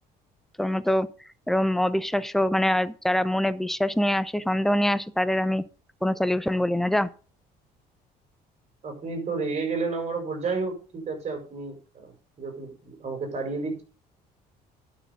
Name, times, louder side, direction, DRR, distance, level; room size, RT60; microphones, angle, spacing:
voice 1, 0.6-1.1 1.5-5.6 6.0-7.1, left 1 dB, ahead, 14 dB, 0.7 m, -24 dB
voice 2, 8.8-13.8, right 4 dB, 40° right, 3 dB, 6.7 m, -31 dB
11.5 x 6.8 x 5.6 m, 0.37 s
cardioid pair, 110°, 17 cm